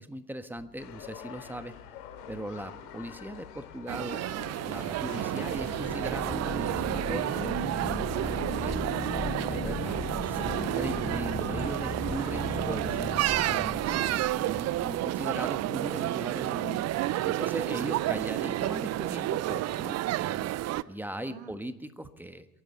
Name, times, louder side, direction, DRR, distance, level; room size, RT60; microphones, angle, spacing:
voice 1, 0.0-1.7 2.3-7.8 8.6-8.8 9.5-13.8 14.4-20.5 20.9-22.5, right 1 dB, 5° right, 10 dB, 1.3 m, -39 dB
sound 1, 0.6-1.1 5.5-15.7, left 4 dB, 15° left, 1.2 m, -38 dB
sound 2, 0.8-13.1, left 9 dB, 75° left, 3.0 m, -46 dB
sound 3, 3.9-20.8, right 15 dB, 35° right, 0.5 m, -30 dB
voice 2, 8.5-9.4 13.7-14.2 17.9-18.1 20.7-20.9 21.2-21.5, right 8 dB, 60° right, 4 dB, 3.2 m, -40 dB
27.5 x 11.5 x 4.4 m, 0.90 s
hypercardioid pair, 80°, 47 cm